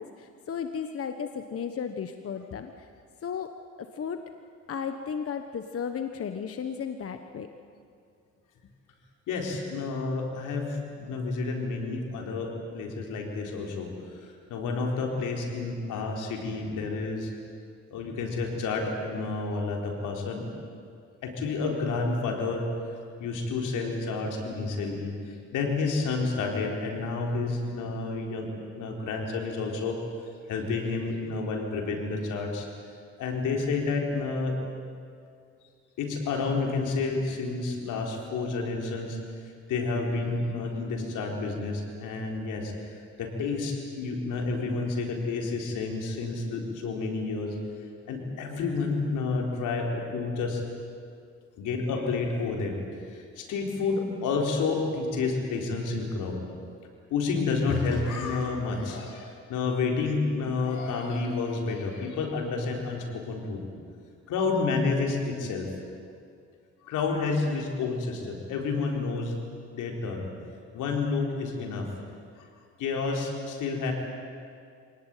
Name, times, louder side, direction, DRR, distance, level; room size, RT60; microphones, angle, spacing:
voice 1, 0.0-2.9 3.2-3.5 3.8-4.2 4.7-7.5, left 7 dB, 50° left, 7 dB, 1.3 m, -34 dB
voice 2, 9.3-14.2 14.5-17.3 17.9-20.5 21.2-22.7 23.2-28.5 28.7-30.0 30.5-32.7 33.2-34.6 36.0-39.2 39.7-42.7 43.2-47.6 48.1-50.6 51.6-52.8 53.1-56.4 57.1-63.7 64.3-65.7 66.8-69.3 69.7-70.3 70.7-71.9 72.8-73.9, left 4 dB, 85° left, 1 dB, 4.4 m, -30 dB
26.0 x 18.5 x 9.2 m, 2.3 s
cardioid pair, 90°, 30 cm